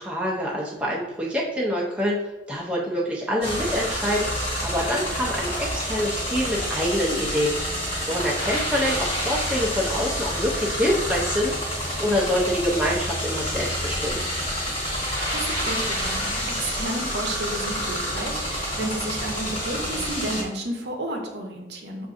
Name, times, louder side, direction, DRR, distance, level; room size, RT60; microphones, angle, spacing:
voice 1, 0.0-7.5 8.1-11.6 12.0-14.2, equal, 5° right, -4 dB, 0.5 m, -26 dB
sound 1, 3.4-20.4, equal, 30° left, 1.1 m, -28 dB
voice 2, 14.9-22.1, right 1 dB, 60° right, 1 dB, 0.7 m, -32 dB
5.9 x 2.5 x 2.5 m, 1.1 s
head